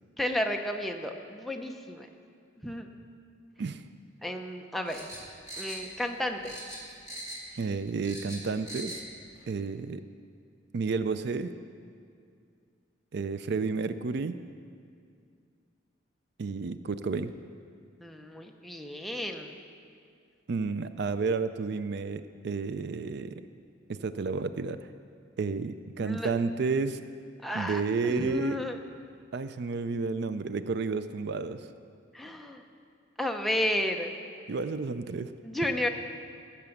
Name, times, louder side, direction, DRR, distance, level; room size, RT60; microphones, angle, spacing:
voice 1, 0.2-2.1 2.6-2.9 4.2-5.1 5.6-6.5 18.0-19.5 26.0-26.3 27.4-28.8 32.1-32.6 33.2-34.1 35.4-35.9, left 1 dB, ahead, 3 dB, 0.6 m, -32 dB
sound 1, 4.9-6.2 6.4-7.6 7.8-9.0 9.4-9.5, right 1 dB, 15° right, 2.1 m, -41 dB
voice 2, 7.6-9.0 9.5-10.0 10.7-11.5 13.1-14.4 16.4-17.3 20.5-23.4 23.9-24.8 25.4-27.0 27.5-28.6 29.3-31.7 34.5-35.3, right 4 dB, 55° right, 12 dB, 0.4 m, -31 dB
15.5 x 6.9 x 7.0 m, 2.3 s
head